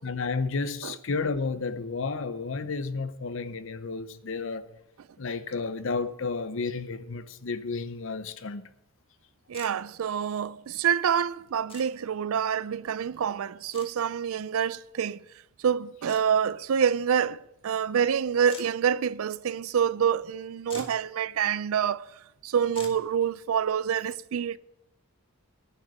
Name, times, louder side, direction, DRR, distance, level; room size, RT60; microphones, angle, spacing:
voice 1, 0.0-4.7 5.2-8.6, left 4 dB, 60° left, 0.7 m, -32 dB
sound 1, 9.5-9.7 11.7-11.9 13.7-13.9 16.1-16.2 18.5-18.7 20.3-20.4 20.6-21.0 22.7-23.0, left 3 dB, 25° left, 1.6 m, -43 dB
voice 2, 9.5-15.2 15.6-22.1 22.4-24.6, right 8 dB, 70° right, 0.4 m, -27 dB
11.0 x 6.5 x 8.3 m
head